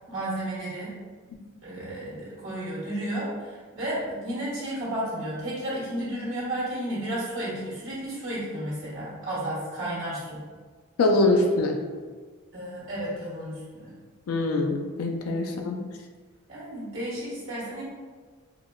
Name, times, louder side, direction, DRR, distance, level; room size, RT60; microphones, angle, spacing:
voice 1, 0.1-1.0 1.6-10.4 12.5-13.9 15.5-15.6 16.5-17.8, right 1 dB, 60° right, -9 dB, 1.4 m, -32 dB
voice 2, 11.0-11.8 14.3-15.8, left 2 dB, 80° left, 3 dB, 0.4 m, -23 dB
3.9 x 2.1 x 2.3 m, 1.5 s
head